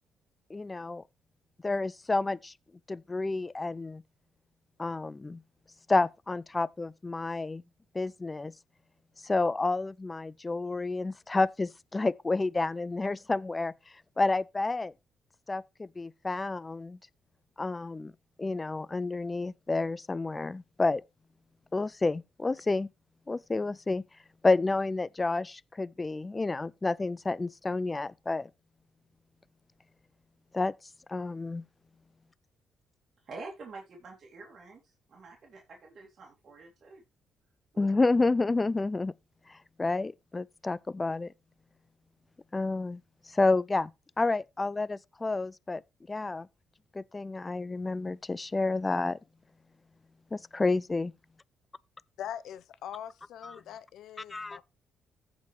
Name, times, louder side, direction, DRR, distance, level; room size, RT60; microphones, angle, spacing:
voice 1, 0.5-1.0 1.6-2.5 2.9-4.0 4.8-5.4 5.9-7.6 7.9-8.5 9.2-13.7 14.2-14.9 15.5-17.0 17.6-18.1 18.4-21.0 21.7-22.9 23.3-24.0 24.4-28.5 30.5-30.7 31.1-31.6 37.8-39.1 39.8-41.3 42.5-43.0 43.3-43.9 44.2-45.8 46.1-46.5 46.9-49.2 50.3-51.1 53.4-53.5 54.3-54.6, left 3 dB, 20° left, 0.4 m, -30 dB
voice 2, 33.2-37.0 37.7-38.2, right 3 dB, 50° right, 2.5 m, -47 dB
voice 3, 52.2-54.6, left 10 dB, 80° left, 0.7 m, -42 dB
15.0 x 5.1 x 3.2 m
cardioid pair, 90°, 0 cm